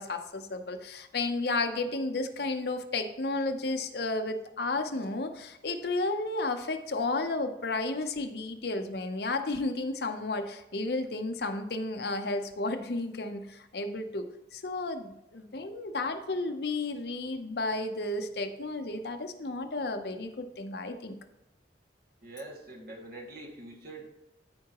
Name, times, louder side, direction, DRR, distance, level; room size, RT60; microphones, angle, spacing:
voice 1, 0.0-14.3 14.5-21.2, left 2 dB, 60° left, 7 dB, 0.7 m, -32 dB
voice 2, 22.2-24.1, right 2 dB, 55° right, -2 dB, 2.0 m, -44 dB
14.0 x 4.7 x 3.0 m, 0.91 s
head